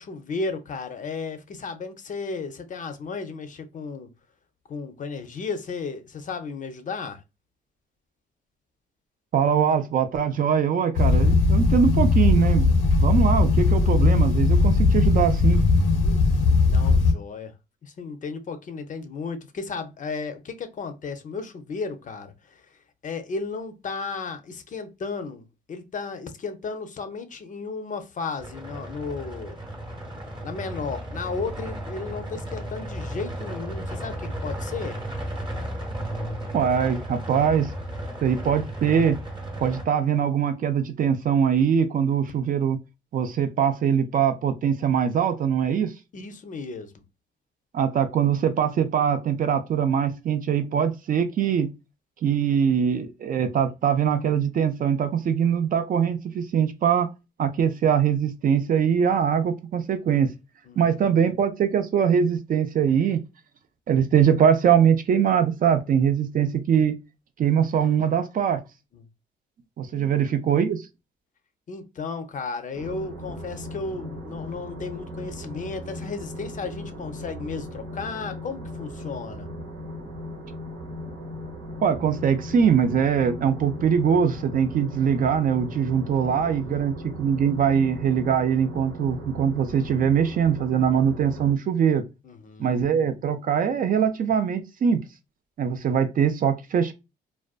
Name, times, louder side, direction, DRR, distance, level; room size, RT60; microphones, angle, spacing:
voice 1, 0.0-4.1 4.7-7.2 16.0-16.2 16.7-17.5 17.8-22.6 23.0-29.6 30.4-35.0 46.1-46.9 60.7-61.3 68.9-69.0 69.9-70.3 71.7-79.5 86.2-86.9 92.2-92.8, left 4 dB, 40° left, 0.5 m, -34 dB
voice 2, 9.3-12.7 13.0-15.6 36.5-37.7 38.2-39.2 39.6-42.8 43.1-45.9 47.7-51.7 52.2-57.1 57.4-60.3 60.8-63.2 63.9-67.0 67.4-68.6 69.8-70.8 81.8-92.1 92.6-95.0 95.6-96.9, right 7 dB, 45° right, 0.4 m, -22 dB
sound 1, 10.9-17.1, left 3 dB, 85° left, 0.6 m, -19 dB
sound 2, 28.4-39.8, right 1 dB, 25° right, 0.8 m, -34 dB
sound 3, 72.7-91.5, equal, 70° right, 0.9 m, -38 dB
2.4 x 2.2 x 2.3 m
cardioid pair, 90°, 20 cm